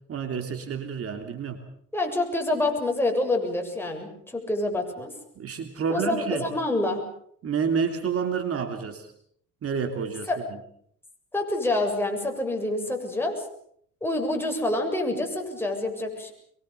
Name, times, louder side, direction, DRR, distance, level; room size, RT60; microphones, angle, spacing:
voice 1, 0.1-1.6 5.3-6.4 7.4-9.1 9.6-10.6, right 6 dB, 50° right, 6 dB, 3.3 m, -29 dB
voice 2, 1.9-5.1 5.9-7.0 10.3-10.4 11.3-13.4 14.0-16.3, left 2 dB, 5° left, 2 dB, 7.3 m, -27 dB
24.5 x 23.5 x 7.0 m, 0.65 s
cardioid pair, 105°, 31 cm